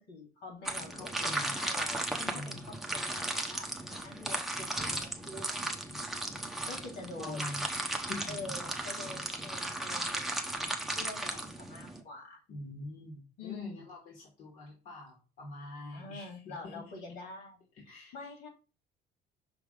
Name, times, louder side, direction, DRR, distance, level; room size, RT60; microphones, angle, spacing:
voice 1, 0.1-5.7 6.7-7.5 8.2-12.4 13.4-13.8 15.9-18.5, left 3 dB, 75° left, 1 dB, 3.2 m, -46 dB
sound 1, 0.7-12.0, right 1 dB, ahead, 0.8 m, -36 dB
voice 2, 0.9-1.5 2.3-2.7 7.1-7.6 7.9-8.5 12.5-16.7 17.8-18.1, left 2 dB, 55° left, -2 dB, 2.0 m, -44 dB
5.9 x 3.4 x 4.8 m, 0.33 s
cardioid pair, 130°, 17 cm